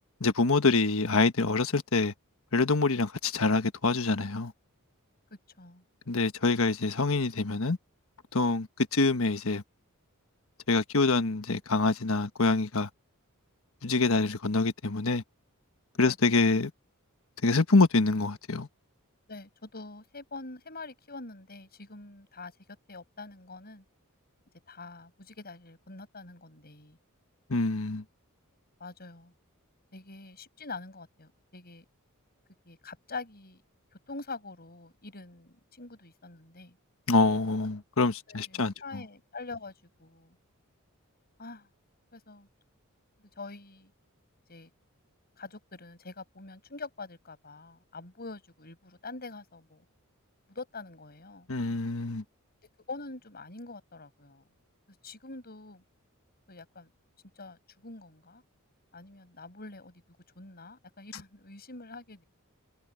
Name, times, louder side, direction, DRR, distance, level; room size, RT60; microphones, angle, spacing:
voice 1, 0.2-2.1 2.5-4.5 6.1-7.8 8.3-9.6 10.7-12.9 13.8-15.2 16.0-16.7 17.4-18.7 27.5-28.0 37.1-39.0 51.5-52.2, left 3 dB, 70° left, 1.4 m, -25 dB
voice 2, 16.0-16.5 19.3-22.5 22.9-23.8 24.7-27.0 28.8-29.3 29.9-31.9 32.7-33.6 34.1-36.8 38.3-39.7 40.0-40.4 41.4-41.7 42.1-42.5 43.4-43.9 44.5-44.7 45.4-49.8 50.5-51.5 52.9-54.4 55.0-55.8 56.5-56.9 57.4-58.4 58.9-60.0 60.4-62.2, left 3 dB, 45° left, 7.1 m, -44 dB
head